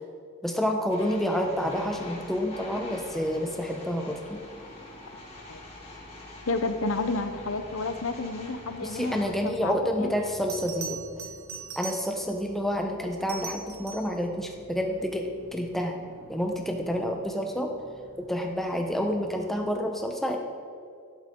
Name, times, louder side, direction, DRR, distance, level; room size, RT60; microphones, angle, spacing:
voice 1, 0.4-4.4 8.8-11.0 11.8-16.0 16.3-17.7 18.2-20.4, equal, ahead, 2 dB, 0.9 m, -29 dB
sound 1, 0.9-9.3, left 2 dB, 30° left, 2.3 m, -45 dB
sound 2, 0.9-19.8, equal, 25° right, 3.2 m, -51 dB
voice 2, 6.5-10.1, left 3 dB, 75° left, 9 dB, 0.8 m, -31 dB
Bell, 10.5-12.4 13.1-14.2 16.9-17.1, right 5 dB, 90° right, 1.2 m, -40 dB
12.5 x 11.5 x 3.8 m, 2.3 s
head